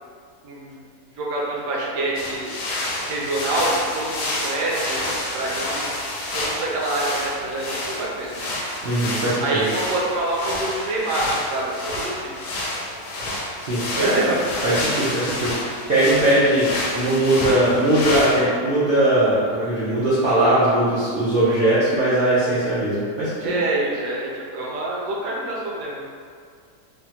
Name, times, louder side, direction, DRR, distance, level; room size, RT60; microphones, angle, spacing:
voice 1, 0.4-0.8 1.1-2.5 3.0-5.9 6.3-8.5 9.4-12.3 13.9-14.3 23.4-26.1, right 2 dB, 65° right, -3 dB, 0.9 m, -26 dB
sound 1, 2.1-18.4, left 1 dB, 80° left, 1.2 m, -29 dB
voice 2, 8.8-9.6 13.6-14.3 14.6-23.6, right 1 dB, 80° right, -11 dB, 0.4 m, -20 dB
3.3 x 2.1 x 2.7 m, 2.1 s
omnidirectional pair, 1.7 m